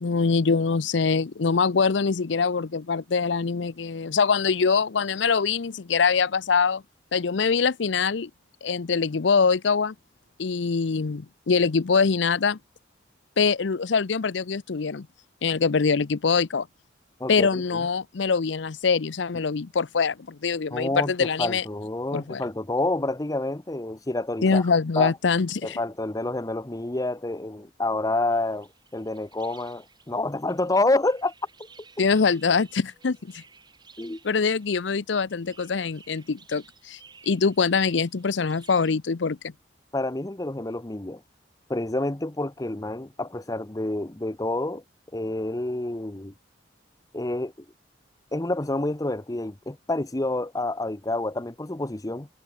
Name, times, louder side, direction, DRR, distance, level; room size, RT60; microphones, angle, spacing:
voice 1, 0.0-6.8 7.1-8.3 8.6-9.9 10.4-12.6 13.4-15.1 15.4-16.7 17.3-21.6 22.1-22.4 24.4-25.8 32.0-33.4 34.2-37.0 37.3-39.5, left 5 dB, 70° left, 0.6 m, -24 dB
voice 2, 17.2-17.9 20.7-24.6 25.0-25.1 25.6-31.3 34.0-34.2 39.9-41.2 41.7-44.8 45.1-46.3 47.1-47.5 48.3-52.3, left 2 dB, 20° left, 0.9 m, -28 dB
sound 1, 28.3-38.9, right 5 dB, 25° right, 3.4 m, -55 dB
head